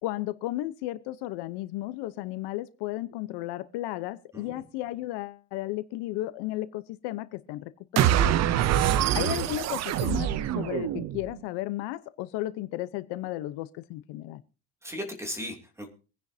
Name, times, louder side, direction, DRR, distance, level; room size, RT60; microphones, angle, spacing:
voice 1, 0.0-8.3 9.1-14.4, left 16 dB, 70° left, 1.0 m, -34 dB
sound 1, 8.0-11.3, right 11 dB, 40° right, 0.7 m, -25 dB
voice 2, 8.6-9.3 14.8-15.9, equal, 5° right, 2.8 m, -38 dB
25.0 x 10.5 x 2.8 m
cardioid pair, 165°, 42 cm